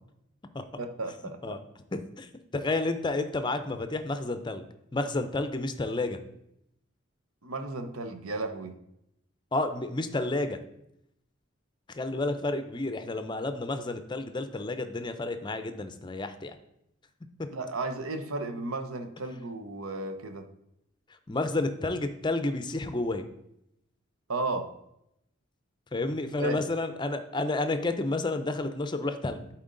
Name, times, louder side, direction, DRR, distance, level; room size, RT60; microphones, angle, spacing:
voice 1, 0.8-1.6 7.4-8.7 17.5-20.4 24.3-24.7 26.4-26.6, right 2 dB, 85° right, 7 dB, 0.8 m, -34 dB
voice 2, 1.9-4.7 4.9-6.2 9.5-10.6 11.9-16.6 21.3-23.2 25.9-29.5, left 2 dB, 20° left, 9 dB, 0.5 m, -30 dB
11.0 x 4.3 x 3.8 m, 0.81 s
head